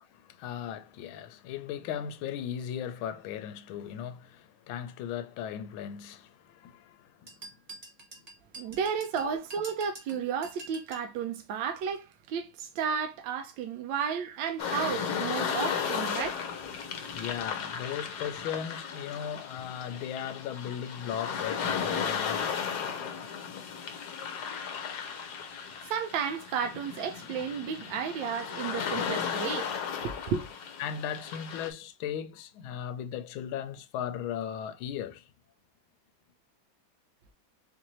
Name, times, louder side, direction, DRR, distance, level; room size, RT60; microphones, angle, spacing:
voice 1, 0.0-7.3 9.2-9.3 17.1-22.7 30.8-35.3, left 9 dB, 85° left, 1.4 m, -37 dB
sound 1, 7.3-11.1, right 2 dB, 55° right, 0.4 m, -47 dB
voice 2, 8.6-16.5 25.8-29.8 30.0-30.4, right 7 dB, 75° right, 1.3 m, -33 dB
sound 2, 14.6-31.7, left 7 dB, 65° left, 1.2 m, -35 dB
4.3 x 2.6 x 2.9 m
omnidirectional pair, 2.2 m